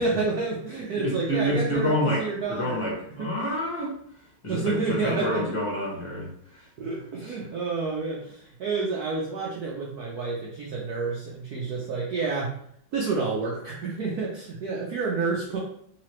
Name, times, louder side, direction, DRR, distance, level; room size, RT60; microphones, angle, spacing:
voice 1, 0.0-2.8 3.2-3.3 4.5-5.6 6.8-12.5 12.9-15.6, right 4 dB, 75° right, -3 dB, 0.9 m, -29 dB
voice 2, 1.0-3.9 4.4-6.7, equal, 20° left, -5 dB, 0.9 m, -28 dB
3.2 x 3.0 x 3.0 m, 0.66 s
omnidirectional pair, 2.3 m